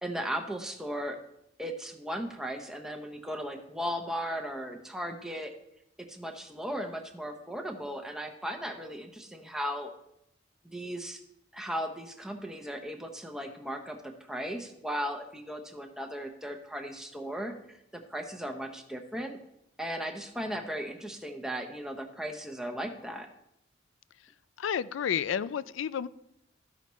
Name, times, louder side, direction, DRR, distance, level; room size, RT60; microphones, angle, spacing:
voice 1, 0.0-1.2 1.6-5.5 6.0-9.9 10.6-11.2 11.5-19.4 19.8-23.3, equal, 5° right, 3 dB, 0.7 m, -36 dB
voice 2, 24.6-26.1, left 8 dB, 90° left, 17 dB, 0.4 m, -31 dB
13.5 x 5.7 x 3.1 m, 0.83 s
head